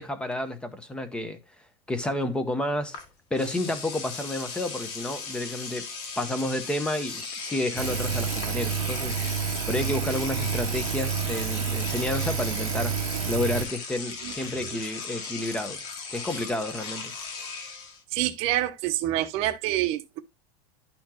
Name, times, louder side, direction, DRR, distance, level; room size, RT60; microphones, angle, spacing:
voice 1, 0.0-1.4 1.9-3.0 3.3-5.9 6.2-13.0 13.2-17.1, left 1 dB, 5° left, 0.9 m, -30 dB
Engine / Domestic sounds home sounds, 2.9-3.0 3.3-18.0, left 5 dB, 50° left, 1.7 m, -37 dB
Engine, 7.8-13.6, right 7 dB, 70° right, 0.9 m, -29 dB
voice 2, 14.2-14.8 18.1-20.2, right 14 dB, 45° right, 0.8 m, -27 dB
11.5 x 4.3 x 2.8 m
supercardioid pair, 155°, 14 cm